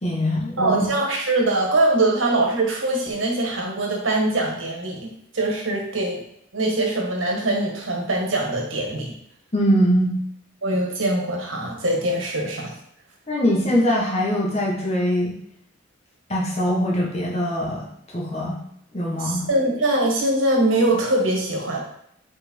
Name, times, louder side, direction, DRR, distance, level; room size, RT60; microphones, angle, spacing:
voice 1, 0.0-0.9 9.5-10.2 13.3-15.3 16.3-17.8 18.1-18.6 18.9-19.5, equal, 35° left, -3 dB, 1.5 m, -22 dB
voice 2, 0.6-5.1 5.3-6.2 6.5-9.1 10.6-12.7 19.2-21.8, right 2 dB, 85° right, 0 dB, 1.6 m, -22 dB
5.0 x 4.7 x 4.6 m, 0.72 s
head